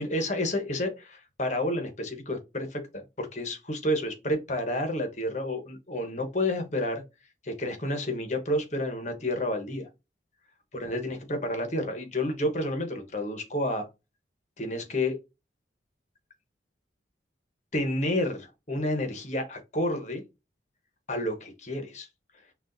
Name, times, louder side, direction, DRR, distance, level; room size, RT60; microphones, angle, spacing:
voice 1, 0.0-7.0 7.4-9.9 10.7-13.9 14.6-15.2 17.7-20.2 21.1-22.1, left 1 dB, 40° left, 1.0 m, -30 dB
6.1 x 2.4 x 2.6 m
head